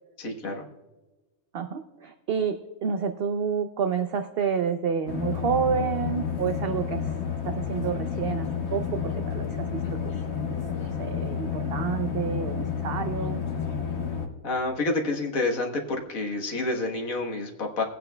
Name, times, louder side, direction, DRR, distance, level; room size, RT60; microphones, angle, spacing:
voice 1, 0.2-0.7 9.7-10.0 14.4-17.8, left 2 dB, 70° left, 1 dB, 1.8 m, -29 dB
voice 2, 1.5-2.6 2.8-7.1 7.4-9.8 10.0-10.1 10.8-13.4, right 7 dB, 60° right, 8 dB, 0.6 m, -29 dB
sound 1, 5.1-14.3, left 7 dB, 50° left, 1.4 m, -30 dB
19.5 x 8.8 x 2.2 m, 1.2 s
omnidirectional pair, 1.5 m